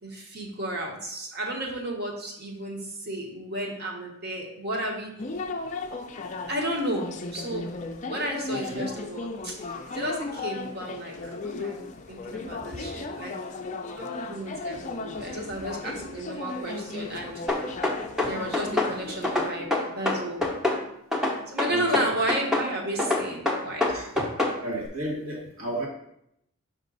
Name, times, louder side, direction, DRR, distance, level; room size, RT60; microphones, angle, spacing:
voice 1, 0.0-5.1 6.5-7.7 8.0-9.5 9.8-13.3 13.9-17.3 18.2-20.4 21.5-24.2, right 1 dB, 45° right, 0 dB, 1.2 m, -33 dB
sound 1, 5.2-19.5, left 3 dB, 35° left, 0.4 m, -36 dB
voice 2, 8.5-8.9 11.8-11.9 12.4-13.1 14.4-16.4 17.6-17.8 18.2-18.3 18.6-18.7 19.6-19.7 20.4-20.5 21.7-22.1 23.9-24.2 24.6-25.9, right 1 dB, 75° right, -3 dB, 1.9 m, -37 dB
sound 2, 17.5-18.9 19.2-20.8 21.1-22.7 23.0-24.6, left 2 dB, ahead, 0.7 m, -25 dB
5.4 x 5.2 x 3.9 m, 0.76 s
head